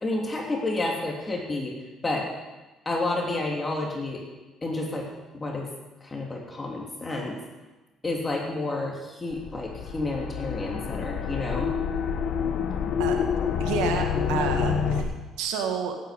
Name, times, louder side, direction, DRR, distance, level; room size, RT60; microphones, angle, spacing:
voice 1, 0.0-1.7 2.0-2.3 2.8-4.2 4.6-5.1 5.3-5.7 6.0-7.4 8.0-11.7, left 2 dB, 25° left, -1 dB, 3.2 m, -30 dB
sound 1, 9.3-15.0, left 7 dB, 65° left, 1.3 m, -27 dB
voice 2, 13.6-15.0 15.4-16.0, right 7 dB, 85° right, 3 dB, 1.8 m, -29 dB
17.5 x 9.1 x 5.3 m, 1.2 s
supercardioid pair, 85°, 0 cm